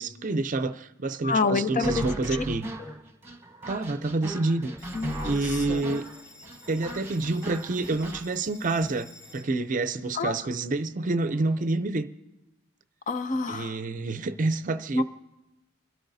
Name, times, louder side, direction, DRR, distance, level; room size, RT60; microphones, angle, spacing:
voice 1, 0.0-2.7 3.7-4.7 5.2-6.0 6.7-12.1 13.5-15.0, right 2 dB, 40° right, 12 dB, 0.5 m, -28 dB
voice 2, 1.2-2.0 2.3-2.4 4.9-6.0 10.1-10.3 13.1-13.8 14.9-15.0, left 4 dB, 40° left, 11 dB, 0.5 m, -28 dB
sound 1, 1.8-8.2, right 1 dB, 10° right, 1.1 m, -37 dB
Bell, 4.8-11.8, left 2 dB, 65° left, 5.1 m, -53 dB
29.0 x 13.0 x 2.7 m, 0.99 s
head